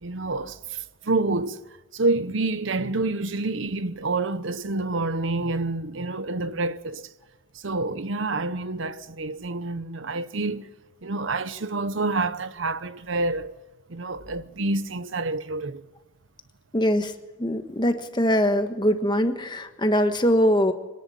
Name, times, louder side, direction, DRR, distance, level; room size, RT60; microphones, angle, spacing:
voice 1, 0.0-1.6 1.9-7.1 7.5-10.7 11.0-13.5 13.9-15.9, right 2 dB, 70° right, 0.9 m, -28 dB
voice 2, 16.7-17.1 17.4-20.7, equal, 20° left, 1.3 m, -22 dB
25.5 x 10.5 x 10.0 m
head